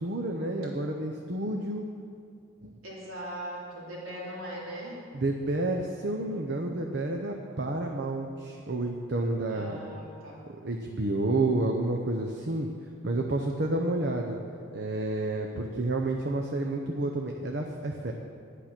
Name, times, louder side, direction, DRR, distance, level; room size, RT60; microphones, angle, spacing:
voice 1, 0.0-1.9 2.6-2.7 5.1-9.8 10.6-12.7 13.0-14.4 14.7-18.1, right 2 dB, 55° right, 2 dB, 0.8 m, -30 dB
voice 2, 2.8-5.0 9.5-10.4, right 1 dB, 85° right, -6 dB, 3.5 m, -39 dB
11.5 x 9.9 x 6.0 m, 2.3 s
head